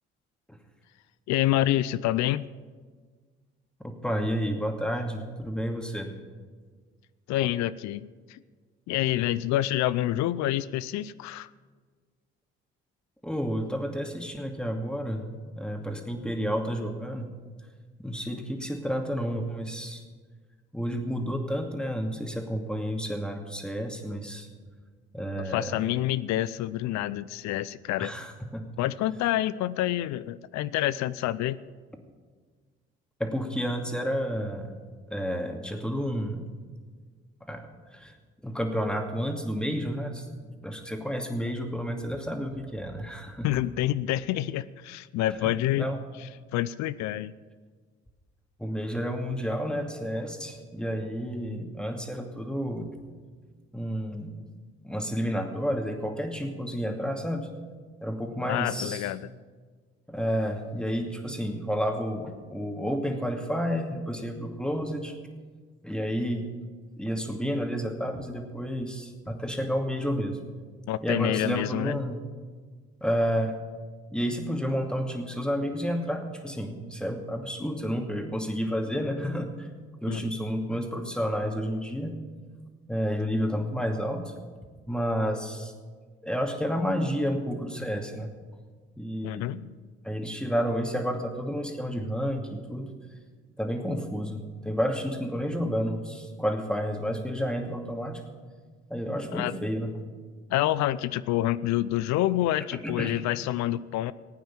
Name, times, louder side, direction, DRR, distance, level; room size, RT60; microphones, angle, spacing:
voice 1, 1.3-2.5 7.3-8.4 8.9-11.5 25.3-28.1 28.8-31.6 43.4-45.9 46.2-47.3 58.5-59.3 70.9-72.0 80.1-80.4 89.2-89.8 99.3-99.6 100.5-104.1, left 14 dB, 65° left, 18 dB, 0.5 m, -27 dB
voice 2, 3.8-6.1 13.2-15.3 15.6-17.3 18.0-20.0 20.7-24.5 25.1-25.7 28.0-28.7 33.2-34.7 35.1-36.5 37.4-38.1 38.4-40.3 40.6-43.5 45.4-46.0 48.6-52.9 53.7-54.4 54.8-57.5 58.0-59.1 60.1-65.2 65.8-66.5 67.0-70.4 71.0-72.2 73.0-73.5 74.1-79.7 80.0-82.2 82.9-84.3 84.9-85.7 86.2-88.3 89.0-89.5 90.0-92.9 93.6-98.2 98.9-99.9 102.7-103.2, equal, 5° left, 3 dB, 2.4 m, -30 dB
16.0 x 9.2 x 7.4 m, 1.5 s
hypercardioid pair, 50°, 30 cm